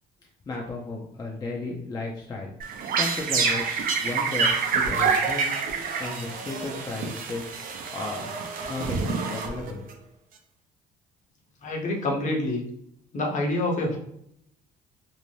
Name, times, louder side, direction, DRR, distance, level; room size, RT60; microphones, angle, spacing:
voice 1, 0.5-2.5 2.9-3.7 3.9-5.6 6.0-7.5 7.9-8.3 8.7-9.8, left 3 dB, 25° left, -1 dB, 0.5 m, -34 dB
sound 1, 2.6-9.9, right 5 dB, 60° right, 0.5 m, -27 dB
voice 2, 11.6-12.6 13.1-14.0, left 2 dB, 45° left, 0 dB, 0.8 m, -26 dB
2.6 x 2.1 x 3.1 m, 0.70 s
cardioid pair, 110°, 17 cm